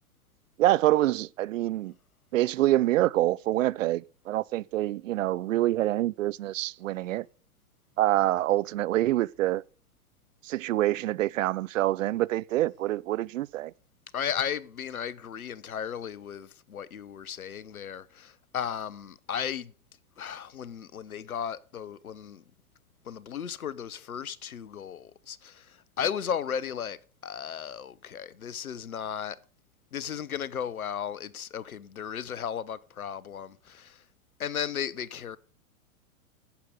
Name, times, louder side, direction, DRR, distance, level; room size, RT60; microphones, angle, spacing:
voice 1, 0.6-1.9 2.3-7.3 8.0-9.6 10.4-13.7, right 15 dB, 65° right, 0.6 m, -26 dB
voice 2, 14.1-19.7 20.2-22.4 23.0-27.0 27.2-29.4 29.9-34.0 34.4-35.4, left 8 dB, 85° left, 0.9 m, -35 dB
11.5 x 8.4 x 5.2 m
hypercardioid pair, 105°, 42 cm